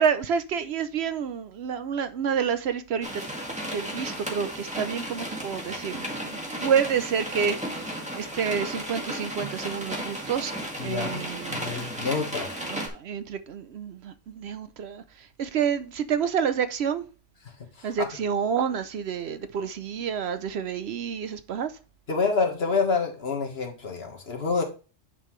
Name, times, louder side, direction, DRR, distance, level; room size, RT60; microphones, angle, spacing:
voice 1, 0.0-3.2 3.7-10.5 10.8-11.9 12.7-17.1 17.8-21.7, right 7 dB, 65° right, 0.8 m, -29 dB
sound 1, 3.0-12.9, equal, 5° right, 1.7 m, -34 dB
voice 2, 10.8-12.5 17.7-18.1 22.1-24.6, left 4 dB, 55° left, 1.7 m, -28 dB
9.4 x 5.6 x 3.1 m
omnidirectional pair, 1.2 m